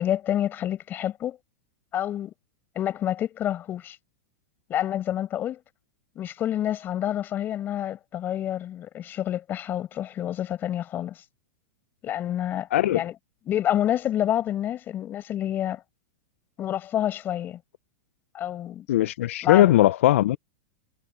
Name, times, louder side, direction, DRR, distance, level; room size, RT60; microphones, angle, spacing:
voice 1, 0.0-1.4 1.9-2.3 2.8-4.0 4.7-5.6 6.2-11.2 12.0-13.2 13.5-15.8 16.6-17.6 18.3-18.9 19.4-19.8, left 11 dB, 25° left, 6.9 m, -28 dB
voice 2, 12.7-13.0 18.9-20.4, left 14 dB, 75° left, 0.5 m, -19 dB
supercardioid pair, 145°, 7 cm